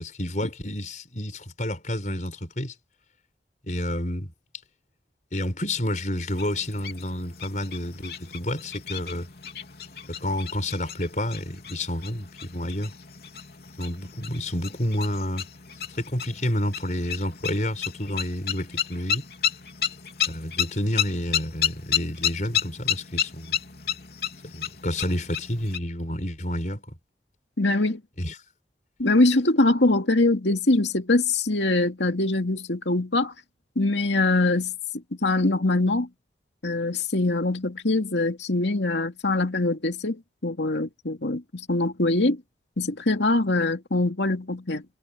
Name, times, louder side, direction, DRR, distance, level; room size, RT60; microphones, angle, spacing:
voice 1, 0.0-2.7 3.7-4.3 5.3-9.3 10.1-12.9 13.8-15.5 16.0-19.3 20.3-23.6 24.4-26.8 28.2-28.3, left 1 dB, 45° left, 5.5 m, -29 dB
sound 1, 6.3-25.8, left 9 dB, 60° left, 3.6 m, -32 dB
voice 2, 27.6-28.0 29.0-33.3 33.8-34.7 35.2-36.1 36.6-42.4 42.8-44.8, left 2 dB, 90° left, 2.5 m, -23 dB
head